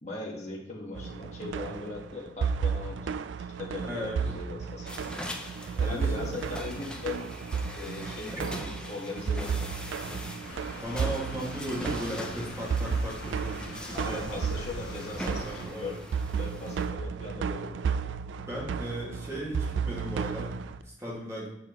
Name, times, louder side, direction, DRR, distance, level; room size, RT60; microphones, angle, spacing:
voice 1, 0.0-3.0 3.6-5.1 5.7-7.3 7.7-9.7 13.9-15.9 16.4-17.8, left 3 dB, 35° left, -3 dB, 1.4 m, -39 dB
sound 1, 1.0-20.8, right 6 dB, 80° right, 0.3 m, -33 dB
voice 2, 3.8-4.2 5.8-6.3 8.3-8.6 10.8-14.4 15.2-16.0 18.4-21.5, equal, 15° right, -5 dB, 2.0 m, -37 dB
sound 2, 4.9-16.9, left 1 dB, 5° left, 0.5 m, -42 dB
sound 3, 10.5-15.7, left 1 dB, 70° left, 1.2 m, -43 dB
6.7 x 6.0 x 3.0 m, 0.84 s
head